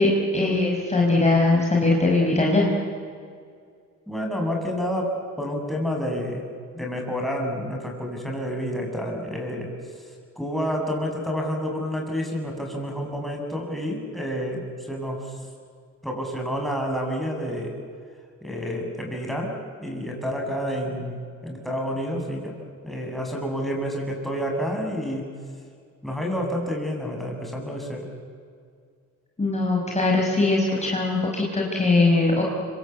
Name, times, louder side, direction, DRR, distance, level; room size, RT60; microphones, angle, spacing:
voice 1, 0.0-2.7 29.4-32.4, left 2 dB, 20° left, -1 dB, 5.7 m, -21 dB
voice 2, 4.1-6.4 6.7-9.7 10.4-15.4 16.0-17.7 18.4-19.5 19.8-22.6 22.8-25.3 26.0-28.1, equal, ahead, 0 dB, 7.8 m, -29 dB
26.0 x 25.5 x 8.4 m, 2.1 s
cardioid pair, 90°, 30 cm